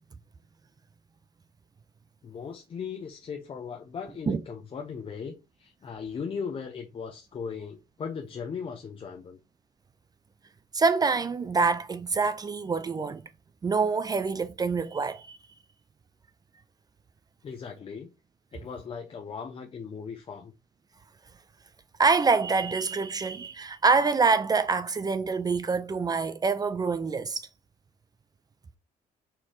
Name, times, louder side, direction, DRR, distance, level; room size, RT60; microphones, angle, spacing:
voice 1, 2.2-9.4 17.4-18.1 18.5-20.5, left 6 dB, 35° left, 0.6 m, -38 dB
voice 2, 10.7-13.2 13.6-15.4 22.0-27.5, right 4 dB, 25° right, 0.4 m, -26 dB
4.4 x 3.0 x 3.7 m
cardioid pair, 110°, 17 cm